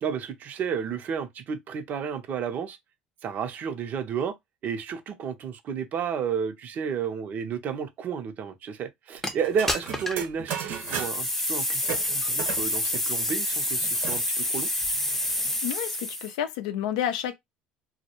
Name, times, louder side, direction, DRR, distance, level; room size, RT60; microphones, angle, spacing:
voice 1, 0.0-2.8 3.2-4.4 4.6-14.7, right 7 dB, 50° right, 0.5 m, -32 dB
sound 1, 9.2-9.3 9.7-10.3 10.7-16.3, left 1 dB, 10° left, 0.5 m, -28 dB
sound 2, 9.4-11.3 11.8-14.2 14.6-14.7 14.9-15.6, right 7 dB, 70° right, 0.8 m, -36 dB
voice 2, 15.6-17.4, left 10 dB, 85° left, 0.4 m, -30 dB
2.1 x 2.0 x 2.9 m
supercardioid pair, 85°, 4 cm